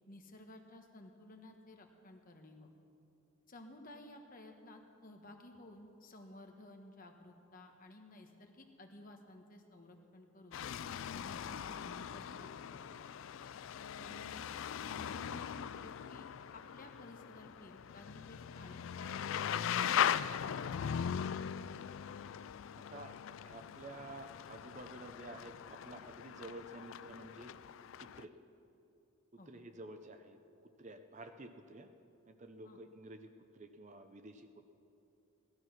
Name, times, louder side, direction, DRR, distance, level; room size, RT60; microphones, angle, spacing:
voice 1, 0.1-2.7 3.5-10.6 11.1-12.9 14.0-14.4 14.8-16.2 16.5-20.0 29.4-29.5 32.6-32.8, left 1 dB, 40° left, 4 dB, 1.2 m, -55 dB
sound 1, 10.5-28.2, left 8 dB, 70° left, 0.3 m, -40 dB
voice 2, 22.9-27.5 28.0-28.3 29.5-30.4 30.8-31.9 32.3-34.6, right 2 dB, 35° right, 7 dB, 0.7 m, -51 dB
16.0 x 13.0 x 5.8 m, 2.7 s
head